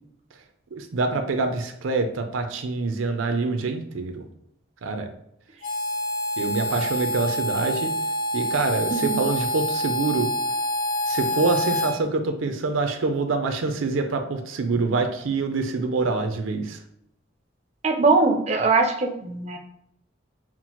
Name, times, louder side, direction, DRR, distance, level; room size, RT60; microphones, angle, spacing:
voice 1, 0.7-4.2 4.8-5.1 6.4-7.9 8.3-10.3 11.1-16.8, right 3 dB, 85° right, 7 dB, 0.5 m, -25 dB
Harmonica, 5.6-12.0, left 1 dB, 50° left, 0.7 m, -26 dB
voice 2, 8.9-9.3 17.8-19.6, right 3 dB, 35° right, 3 dB, 0.4 m, -21 dB
5.8 x 2.1 x 2.9 m, 0.75 s
head